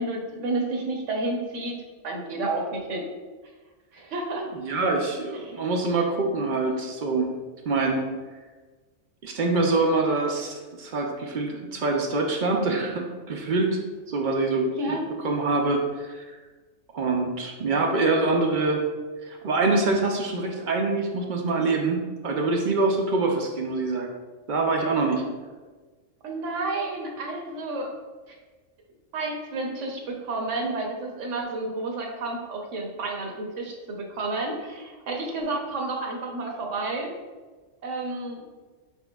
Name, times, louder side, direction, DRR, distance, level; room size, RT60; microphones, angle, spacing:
voice 1, 0.0-1.8 2.0-3.1 3.9-4.5 5.3-5.6 6.7-6.8 14.8-15.0 26.2-27.9 29.1-37.1 37.8-38.4, right 2 dB, 75° right, 1 dB, 1.1 m, -30 dB
voice 2, 4.6-7.3 7.7-8.0 9.2-13.8 14.1-15.0 15.2-16.4 16.9-18.8 19.3-24.1 24.5-25.2, right 3 dB, 55° right, 2 dB, 0.6 m, -25 dB
5.1 x 4.4 x 2.3 m, 1.3 s
omnidirectional pair, 1.3 m